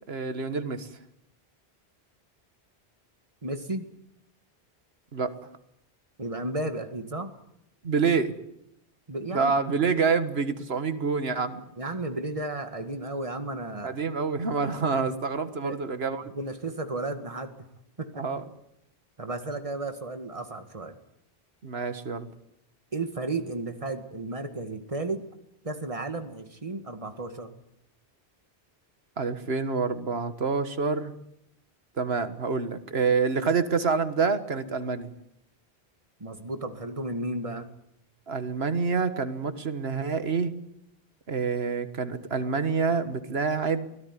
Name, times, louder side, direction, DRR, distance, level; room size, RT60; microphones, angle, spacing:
voice 1, 0.1-0.9 5.1-5.3 7.8-8.3 9.3-11.6 13.8-16.3 18.2-18.4 21.6-22.3 29.2-31.1 32.0-35.1 38.3-40.5 41.3-43.9, right 5 dB, 75° right, 10 dB, 1.8 m, -27 dB
voice 2, 3.4-3.9 6.2-7.3 9.1-9.5 11.8-14.0 15.5-15.8 16.2-17.7 18.0-18.2 19.2-21.0 22.9-25.3 25.6-27.5 36.2-37.7, right 2 dB, 30° right, 7 dB, 2.1 m, -33 dB
24.5 x 17.5 x 9.8 m, 0.81 s
omnidirectional pair, 1.1 m